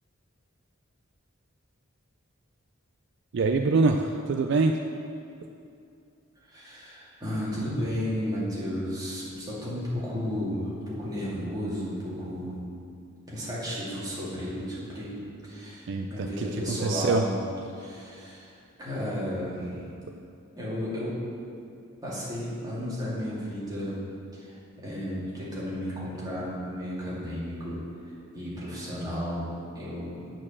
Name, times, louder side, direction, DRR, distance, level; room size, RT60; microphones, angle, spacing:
voice 1, 3.3-4.8 15.9-17.2, right 3 dB, 60° right, 5 dB, 0.4 m, -25 dB
voice 2, 6.4-12.6 13.3-17.4 17.7-18.5 18.8-19.9 20.5-21.2 22.0-24.0 24.3-27.8 28.3-30.3, equal, 20° right, -8 dB, 2.4 m, -33 dB
8.6 x 4.5 x 7.2 m, 2.5 s
head